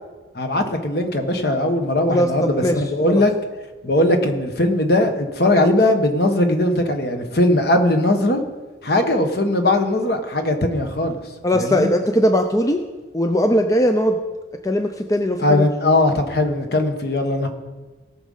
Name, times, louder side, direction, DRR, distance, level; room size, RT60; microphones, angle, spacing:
voice 1, 0.3-3.3 3.8-8.4 8.8-11.1 11.5-11.9 15.4-17.5, left 1 dB, 55° left, 5 dB, 1.3 m, -19 dB
voice 2, 2.1-3.2 11.4-12.8 13.1-14.2 14.6-15.6, equal, 15° left, 5 dB, 0.5 m, -19 dB
18.0 x 6.4 x 5.5 m, 1.3 s
head